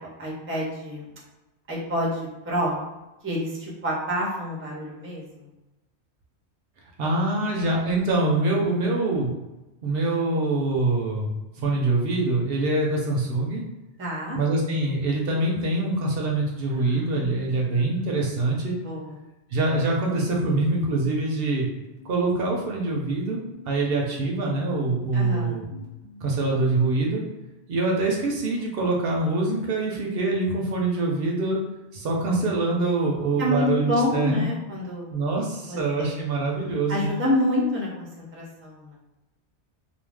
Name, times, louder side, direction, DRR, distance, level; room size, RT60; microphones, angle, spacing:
voice 1, 0.2-1.1 1.7-2.8 3.2-5.5 14.0-14.4 16.9-17.9 18.8-19.1 25.1-25.6 33.4-35.1 35.7-35.8 36.9-39.0, left 1 dB, 15° right, -4 dB, 0.5 m, -28 dB
voice 2, 7.0-9.3 9.8-13.6 14.3-18.7 19.5-21.7 22.0-23.4 23.7-25.6 26.2-27.2 27.7-31.6 31.9-34.4 35.1-37.1, right 2 dB, 65° right, -1 dB, 0.7 m, -24 dB
sound 1, 22.0-27.0, left 4 dB, 85° left, 1.0 m, -48 dB
2.5 x 2.1 x 3.3 m, 1.0 s
omnidirectional pair, 1.1 m